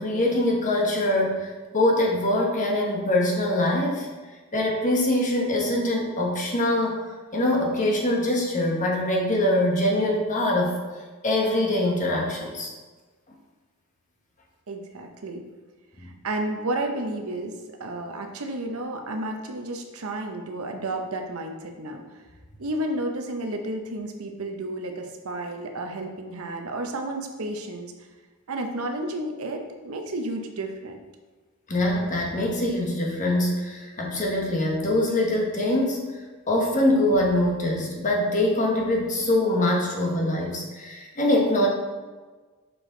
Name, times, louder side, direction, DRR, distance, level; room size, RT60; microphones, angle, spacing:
voice 1, 0.0-4.1 4.5-7.0 7.3-10.8 11.2-12.7 16.0-16.1 31.7-36.0 36.5-41.7, left 1 dB, 35° left, -1 dB, 1.1 m, -23 dB
voice 2, 14.7-15.4 16.0-22.0 22.6-27.9 28.5-31.0, right 1 dB, 70° right, 3 dB, 0.7 m, -32 dB
6.1 x 4.8 x 3.9 m, 1.3 s
head